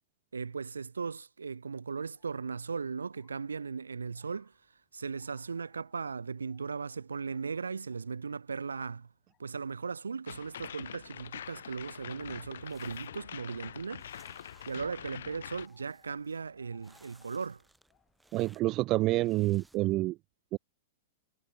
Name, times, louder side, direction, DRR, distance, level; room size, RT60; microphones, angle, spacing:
voice 1, 0.3-4.5 4.9-9.1 9.4-14.1 14.7-17.6, right 5 dB, 75° right, 1.0 m, -37 dB
sound 1, 2.1-19.3, left 12 dB, 30° left, 5.9 m, -71 dB
sound 2, 10.3-15.7, left 10 dB, 60° left, 0.8 m, -45 dB
sound 3, 12.2-19.9, right 2 dB, 5° right, 5.0 m, -65 dB
voice 2, 18.3-20.2 20.5-20.6, right 18 dB, 35° right, 0.3 m, -28 dB
figure-of-eight pair, 100°, 0 cm